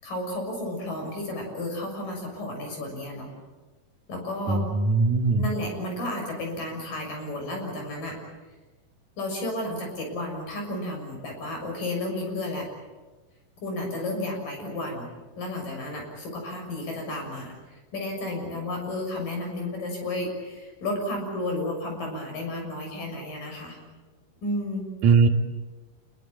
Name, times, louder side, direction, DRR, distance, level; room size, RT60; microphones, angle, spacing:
voice 1, 0.0-3.3 4.1-4.6 5.4-8.2 9.2-12.7 13.6-15.1 15.4-23.8 24.4-24.9, left 1 dB, 55° left, 2 dB, 8.2 m, -32 dB
voice 2, 4.5-5.4 25.0-25.3, right 4 dB, 50° right, 3 dB, 3.2 m, -20 dB
28.0 x 22.0 x 8.7 m, 1.2 s
omnidirectional pair, 4.6 m